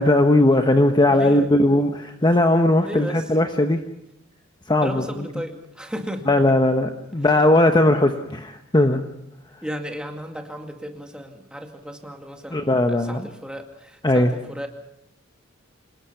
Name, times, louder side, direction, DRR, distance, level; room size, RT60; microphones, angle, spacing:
voice 1, 0.0-3.8 4.7-5.3 6.3-9.0 12.5-13.2 14.0-14.3, left 1 dB, 20° left, 6 dB, 1.0 m, -18 dB
voice 2, 1.1-1.5 2.8-3.3 4.8-6.4 9.6-14.7, equal, 5° right, 3 dB, 2.3 m, -34 dB
27.0 x 19.5 x 5.8 m, 0.80 s
head